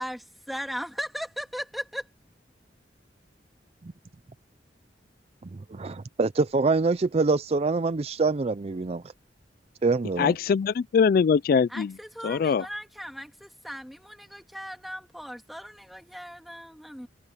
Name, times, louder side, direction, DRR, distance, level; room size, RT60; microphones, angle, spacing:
voice 1, 0.0-2.1 11.7-17.1, equal, ahead, 2.5 m, -37 dB
voice 2, 5.4-9.0 9.8-10.3, right 3 dB, 35° right, 0.5 m, -25 dB
voice 3, 10.2-11.9 12.2-12.7, left 6 dB, 55° left, 0.3 m, -22 dB
open air
head